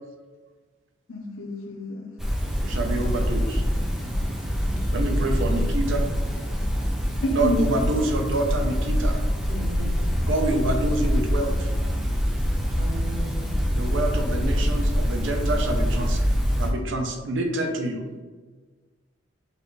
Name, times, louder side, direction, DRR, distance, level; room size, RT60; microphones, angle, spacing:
voice 1, 1.1-2.1 4.7-5.2 7.2-7.7, left 2 dB, 80° left, 3 dB, 0.6 m, -29 dB
sound 1, 2.2-16.7, equal, ahead, 0.4 m, -25 dB
voice 2, 2.6-3.6 4.9-6.3 7.3-9.2 10.2-11.7 13.7-16.2 16.6-18.0, right 2 dB, 65° right, 3 dB, 0.5 m, -27 dB
voice 3, 9.5-10.0 12.7-13.6, equal, 35° right, -4 dB, 1.1 m, -37 dB
5.6 x 2.4 x 3.1 m, 1.4 s
head